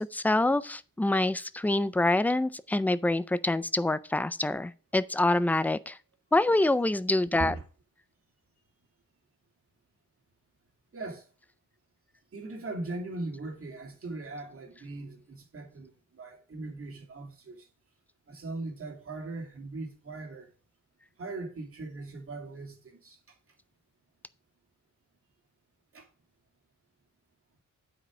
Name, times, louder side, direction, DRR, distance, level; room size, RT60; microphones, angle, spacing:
voice 1, 0.0-6.0 6.3-7.5, left 2 dB, 5° left, 0.3 m, -26 dB
voice 2, 10.9-11.3 12.3-17.7 18.3-20.5 21.2-23.3 25.9-26.1, right 2 dB, 45° right, 2.4 m, -39 dB
8.7 x 5.0 x 5.9 m
wide cardioid pair, 170°, 32 cm